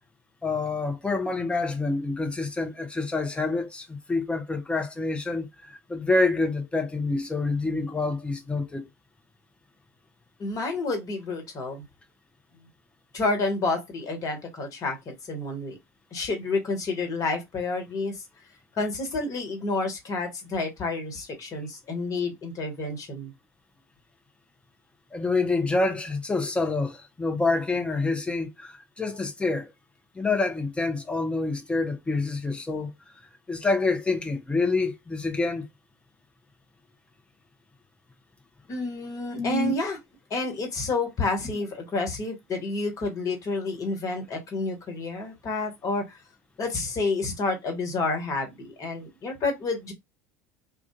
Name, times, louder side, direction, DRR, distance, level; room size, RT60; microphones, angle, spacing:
voice 1, 0.4-8.9 25.1-29.7 30.1-32.9 33.5-35.7 39.4-39.7, left 3 dB, 10° left, 0.7 m, -27 dB
voice 2, 10.4-11.8 13.1-15.8 16.1-18.2 18.7-23.3 38.7-40.0 40.3-46.2 46.6-49.9, left 3 dB, 35° left, 1.4 m, -29 dB
2.5 x 2.4 x 3.6 m
figure-of-eight pair, 65°, 9 cm